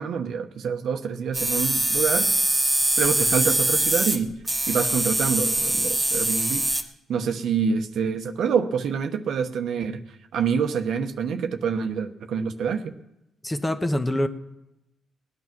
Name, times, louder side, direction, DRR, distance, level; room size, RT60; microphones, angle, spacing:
voice 1, 0.0-2.3 3.0-4.3 4.7-6.7 7.1-10.0 10.3-12.8, right 6 dB, 70° right, 7 dB, 1.0 m, -26 dB
sound 1, 1.3-4.2 4.5-6.8, right 1 dB, 10° right, 1.7 m, -23 dB
voice 2, 13.4-14.3, left 1 dB, 15° left, 8 dB, 1.1 m, -24 dB
18.5 x 9.6 x 6.0 m, 0.89 s
cardioid pair, 90°, 0 cm